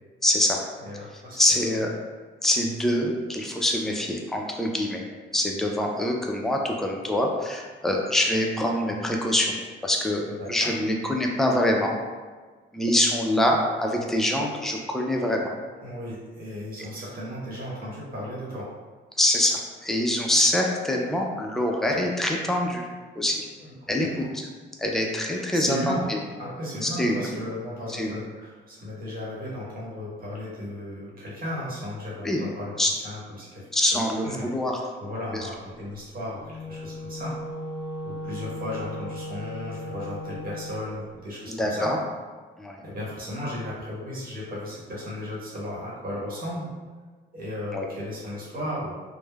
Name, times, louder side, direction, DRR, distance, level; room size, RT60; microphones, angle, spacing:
voice 1, 0.2-0.6 1.4-1.9 2.4-5.0 5.3-9.5 9.8-11.9 12.7-15.5 19.2-22.9 23.2-23.5 23.9-24.1 24.8-26.2 26.8-27.3 27.9-28.1 32.2-32.4 32.8-32.9 33.7-34.8 35.3-35.5 41.5-42.0 42.6-42.8 47.7-47.9, left 1 dB, ahead, 0 dB, 0.3 m, -24 dB
voice 2, 0.8-1.6 10.3-10.7 15.8-18.7 23.6-24.3 25.3-26.0 26.4-32.7 33.0-34.5 35.0-37.4 38.0-41.9 42.8-46.7 47.3-48.9, left 1 dB, 45° right, -6 dB, 1.0 m, -35 dB
Wind instrument woodwind instrument, 36.4-40.9, left 1 dB, 15° right, 1.1 m, -36 dB
3.1 x 2.1 x 2.2 m, 1.4 s
cardioid pair, 90°, 20 cm